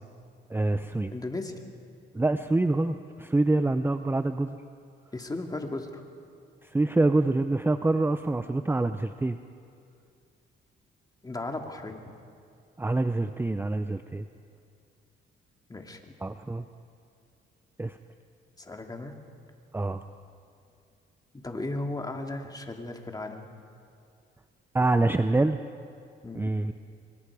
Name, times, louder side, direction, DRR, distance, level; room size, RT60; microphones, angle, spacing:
voice 1, 0.5-1.1 2.1-4.6 6.6-9.4 12.8-14.2 16.2-16.6 17.8-18.0 19.7-20.0 24.7-25.6 26.3-26.7, right 2 dB, 10° right, 9 dB, 0.7 m, -26 dB
voice 2, 1.1-1.6 5.1-6.0 11.2-12.0 15.7-16.0 18.6-19.1 21.4-23.5 26.2-26.5, left 2 dB, 20° left, 3 dB, 2.5 m, -35 dB
27.0 x 24.5 x 4.9 m, 2.4 s
cardioid pair, 90°, 20 cm